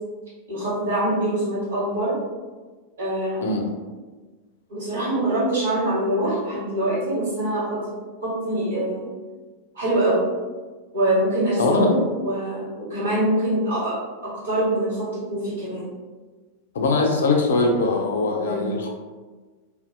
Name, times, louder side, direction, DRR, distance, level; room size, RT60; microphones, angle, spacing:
voice 1, 0.5-2.1 3.0-3.7 4.7-7.9 8.2-9.1 9.7-10.2 10.9-11.9 12.2-13.9 14.2-15.9 18.4-18.7, right 1 dB, 65° right, -9 dB, 1.5 m, -24 dB
voice 2, 11.6-11.9 16.7-18.9, left 3 dB, 65° left, 2 dB, 0.4 m, -21 dB
2.6 x 2.2 x 2.4 m, 1.3 s
figure-of-eight pair, 90°, 0 cm